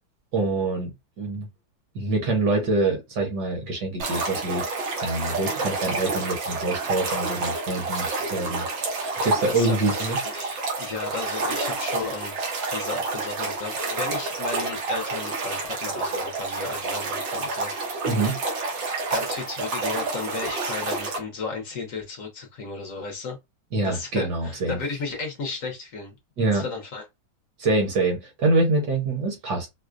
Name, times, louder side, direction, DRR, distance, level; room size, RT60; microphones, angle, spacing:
voice 1, 0.3-1.5 1.9-4.6 5.0-8.7 9.2-10.2 18.1-18.4 23.7-24.8 26.4-26.6 27.6-29.7, right 2 dB, 65° right, 1.5 m, -25 dB
sound 1, 4.0-21.2, right 3 dB, 90° right, 1.8 m, -29 dB
voice 2, 9.4-12.3 12.7-17.8 19.1-23.4 23.8-26.1 26.5-27.0, left 4 dB, 60° left, 1.0 m, -34 dB
4.8 x 2.1 x 2.4 m
omnidirectional pair, 2.0 m